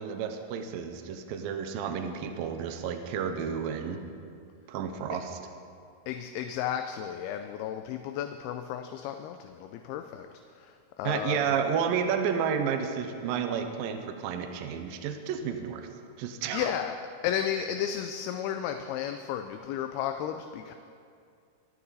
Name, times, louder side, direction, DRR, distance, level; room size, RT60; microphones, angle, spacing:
voice 1, 0.0-4.0 4.7-5.4 11.0-15.9 16.2-16.7, right 7 dB, 75° right, 6 dB, 2.4 m, -31 dB
voice 2, 6.1-10.3 10.5-11.5 16.5-17.0 17.2-20.7, left 9 dB, 80° left, 6 dB, 2.5 m, -33 dB
25.0 x 9.7 x 4.1 m, 2.3 s
omnidirectional pair, 4.6 m